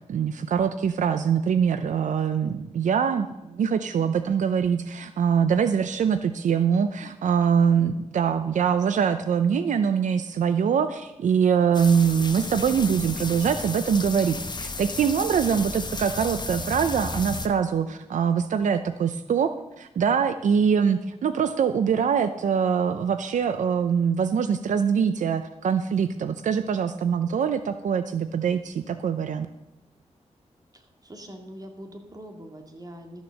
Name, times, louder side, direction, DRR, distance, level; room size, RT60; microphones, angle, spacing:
voice 1, 0.1-29.5, right 7 dB, 85° right, 11 dB, 0.5 m, -23 dB
sound 1, 11.7-17.5, left 3 dB, 35° left, 1.1 m, -33 dB
voice 2, 30.7-33.2, equal, 30° right, 4 dB, 2.2 m, -43 dB
13.0 x 7.1 x 6.4 m, 0.92 s
cardioid pair, 60°, 12 cm